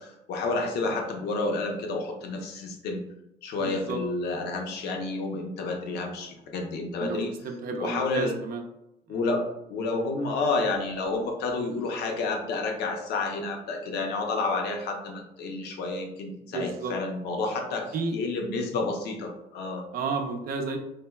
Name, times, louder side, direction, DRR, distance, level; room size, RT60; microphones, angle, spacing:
voice 1, 0.0-3.0 3.4-7.3 7.8-8.4 9.1-19.9, left 3 dB, 75° left, 2 dB, 0.6 m, -30 dB
voice 2, 3.6-4.0 7.0-8.6 9.1-9.2 16.5-16.9 17.9-18.2 19.9-20.8, right 4 dB, 60° right, 4 dB, 0.5 m, -32 dB
3.3 x 2.1 x 2.2 m, 0.87 s
cardioid pair, 110°, 17 cm